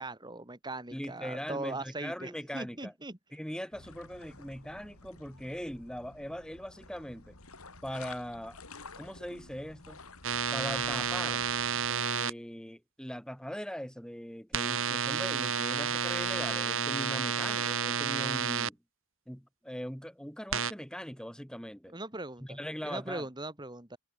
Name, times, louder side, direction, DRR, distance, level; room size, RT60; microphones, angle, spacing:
voice 1, 0.0-3.2 21.9-22.6 22.8-24.0, right 2 dB, 20° right, 2.2 m, -40 dB
voice 2, 0.9-2.9 3.3-7.4 7.8-8.6 9.0-10.0 10.5-11.4 11.9-18.8 19.3-22.0 22.4-23.3, equal, 5° left, 6.7 m, -40 dB
sound 1, 3.7-11.9, left 3 dB, 85° left, 7.3 m, -51 dB
sound 2, 10.2-12.3 14.5-18.7 20.5-20.7, right 7 dB, 65° right, 2.2 m, -31 dB
head